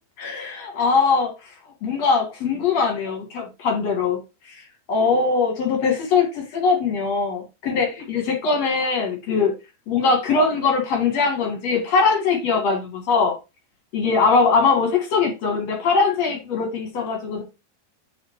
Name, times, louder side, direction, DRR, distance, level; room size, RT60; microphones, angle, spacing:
voice 1, 0.2-1.3 1.8-4.2 4.9-9.5 9.9-13.3 13.9-17.4, left 4 dB, 50° left, 2.3 m, -21 dB
5.8 x 4.8 x 4.5 m
omnidirectional pair, 4.6 m